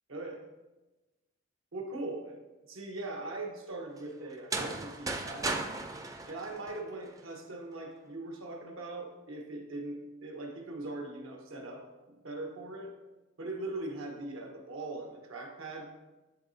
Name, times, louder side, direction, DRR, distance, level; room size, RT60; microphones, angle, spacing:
voice 1, 0.1-0.4 1.7-2.4 2.7-5.7 6.2-12.9 13.4-15.9, right 2 dB, 85° right, 1 dB, 1.1 m, -41 dB
sound 1, 4.3-7.2, right 3 dB, 15° right, 0.4 m, -36 dB
10.5 x 3.9 x 2.7 m, 1.1 s
head